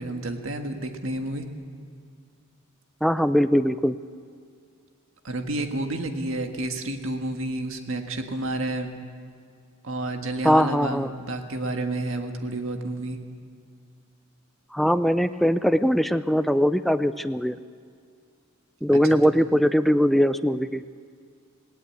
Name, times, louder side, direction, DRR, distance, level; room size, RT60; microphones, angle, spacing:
voice 1, 0.0-1.5 5.2-8.9 9.8-13.2 19.0-19.2, right 2 dB, 70° right, 5 dB, 1.7 m, -30 dB
voice 2, 3.0-3.9 10.4-11.1 14.7-17.6 18.8-20.8, equal, ahead, 11 dB, 0.4 m, -21 dB
18.0 x 18.0 x 8.4 m, 2.2 s
head